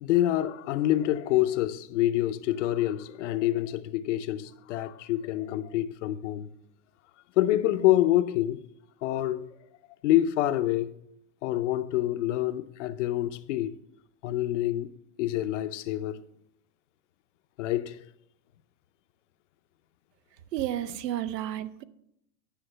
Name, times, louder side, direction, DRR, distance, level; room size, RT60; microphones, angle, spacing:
voice 1, 0.0-6.5 7.4-8.6 9.0-9.5 10.0-11.0 11.4-13.8 14.2-14.9 15.2-16.2 17.6-18.0, left 14 dB, 50° left, 0.6 m, -26 dB
voice 2, 20.5-21.8, right 12 dB, 80° right, 0.8 m, -31 dB
10.0 x 5.9 x 5.5 m
supercardioid pair, 145°, 49 cm